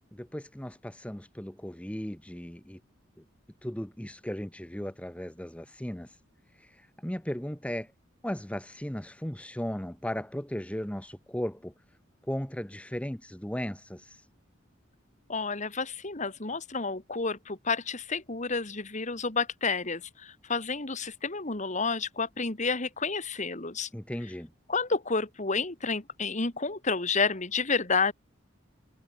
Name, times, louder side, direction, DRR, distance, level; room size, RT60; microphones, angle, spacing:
voice 1, 0.1-2.8 3.6-6.2 6.5-7.9 8.2-11.7 12.2-14.3 23.9-24.5, equal, 5° left, 0.9 m, -36 dB
voice 2, 15.3-23.9 24.7-28.1, left 4 dB, 35° left, 2.2 m, -30 dB
head